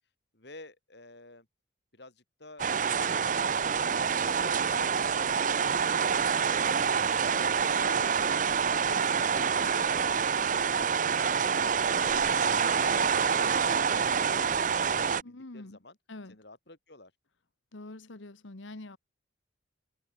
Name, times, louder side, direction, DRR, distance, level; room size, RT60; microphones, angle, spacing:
voice 1, 0.3-1.5 1.9-6.9 7.2-8.0 8.4-11.2 11.7-14.2 14.4-16.0 16.3-17.1, left 2 dB, 55° left, 3.4 m, -53 dB
sound 1, 2.6-15.2, right 6 dB, 40° right, 0.5 m, -27 dB
voice 2, 15.2-15.8 16.1-16.4 17.7-19.0, left 2 dB, 75° left, 1.4 m, -45 dB
head